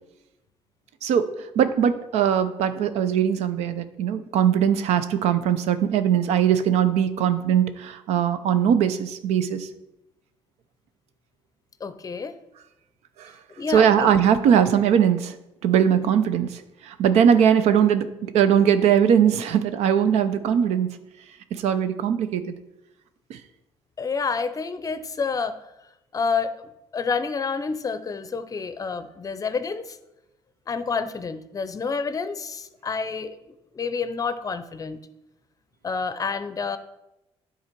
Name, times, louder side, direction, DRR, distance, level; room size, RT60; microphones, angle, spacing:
voice 1, 1.0-9.7 13.2-13.3 13.7-15.3 15.6-21.0 21.5-22.5 23.3-23.4, right 8 dB, 85° right, 11 dB, 0.5 m, -20 dB
voice 2, 11.8-12.3 13.6-14.1 24.0-25.6 26.1-30.0 30.7-33.4 33.7-35.0 35.8-36.8, left 5 dB, 35° left, 12 dB, 0.6 m, -28 dB
9.6 x 3.9 x 4.5 m, 0.94 s
cardioid pair, 90°, 11 cm